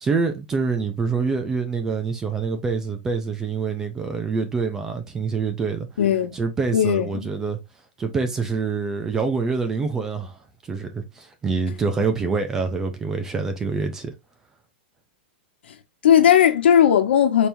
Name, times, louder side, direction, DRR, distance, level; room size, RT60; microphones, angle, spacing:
voice 1, 0.0-5.9 6.3-7.6 8.0-10.4 10.7-14.1, right 4 dB, 10° right, 0.4 m, -26 dB
voice 2, 6.0-6.3 6.7-7.3 15.7-15.8 16.0-17.5, left 9 dB, 75° left, 1.1 m, -17 dB
4.4 x 3.4 x 2.6 m
supercardioid pair, 175°, 6 cm